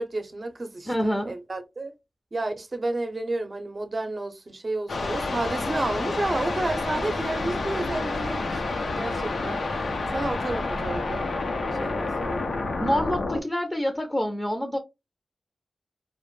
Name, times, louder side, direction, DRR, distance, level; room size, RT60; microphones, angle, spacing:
voice 1, 0.0-1.9 2.3-8.7 8.9-9.6 10.1-11.5 11.8-12.5, right 2 dB, 45° right, 0.6 m, -31 dB
voice 2, 0.9-1.3 12.8-14.8, equal, 15° left, 0.5 m, -26 dB
sound 1, 4.9-13.4, left 3 dB, 85° left, 0.5 m, -29 dB
2.1 x 2.1 x 3.0 m
cardioid pair, 50°, 0 cm